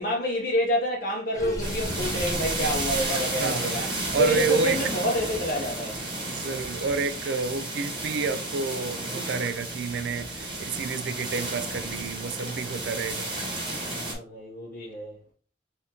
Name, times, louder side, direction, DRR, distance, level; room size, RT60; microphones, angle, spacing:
voice 1, 0.0-3.9 4.2-6.0 12.4-13.0 13.8-15.2, equal, 55° left, 0.7 m, -28 dB
Water / Sink (filling or washing), 1.3-3.1, equal, 15° left, 0.8 m, -34 dB
sound 1, 1.6-14.1, right 2 dB, 25° right, 1.1 m, -32 dB
voice 2, 3.4-4.8 6.3-13.3, right 5 dB, 65° right, 0.3 m, -29 dB
3.7 x 3.4 x 2.7 m
head